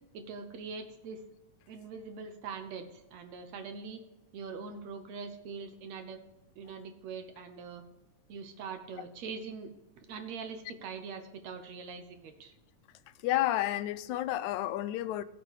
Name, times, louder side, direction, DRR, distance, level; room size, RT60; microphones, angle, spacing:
voice 1, 0.1-1.2 1.7-4.0 4.3-6.2 6.6-7.8 8.3-9.7 10.0-12.5, right 5 dB, 65° right, 7 dB, 2.1 m, -43 dB
voice 2, 13.2-15.2, left 14 dB, 80° left, 13 dB, 1.9 m, -30 dB
16.5 x 6.7 x 4.7 m, 0.97 s
omnidirectional pair, 3.6 m